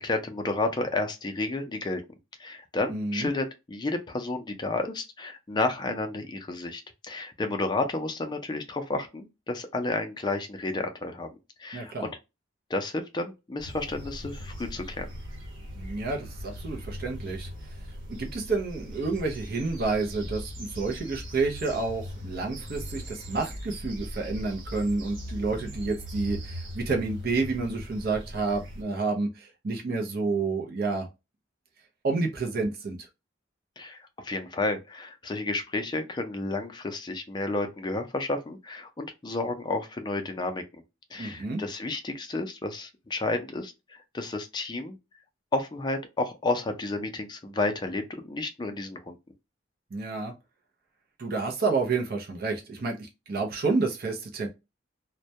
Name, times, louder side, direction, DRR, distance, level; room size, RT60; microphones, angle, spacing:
voice 1, 0.0-2.0 2.4-11.3 11.6-12.1 12.7-15.1 33.8-40.6 41.1-45.0 45.5-49.2, left 2 dB, 25° left, 0.4 m, -31 dB
voice 2, 2.9-3.3 11.7-12.1 15.8-17.5 18.1-31.1 32.0-33.1 41.2-41.6 49.9-50.3 51.2-54.5, right 3 dB, 55° right, 0.5 m, -29 dB
sound 1, 13.6-28.8, equal, 85° right, 1.1 m, -39 dB
2.2 x 2.1 x 2.6 m
head